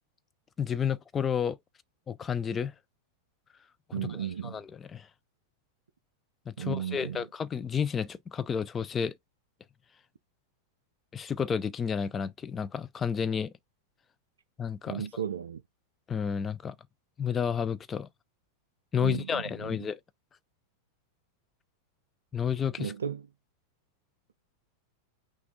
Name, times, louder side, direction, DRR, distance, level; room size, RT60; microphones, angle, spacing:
voice 1, 0.6-1.6 2.1-2.7 4.4-4.6 4.9-5.1 6.5-9.2 11.1-13.5 14.6-15.0 16.1-16.7 17.2-18.1 18.9-20.0 22.3-22.9, left 7 dB, 20° left, 0.5 m, -31 dB
voice 2, 3.9-4.6 6.6-7.2 14.9-15.6 19.0-19.9 22.8-23.3, right 9 dB, 70° right, 0.4 m, -35 dB
5.9 x 2.5 x 3.6 m
figure-of-eight pair, 90°, 0 cm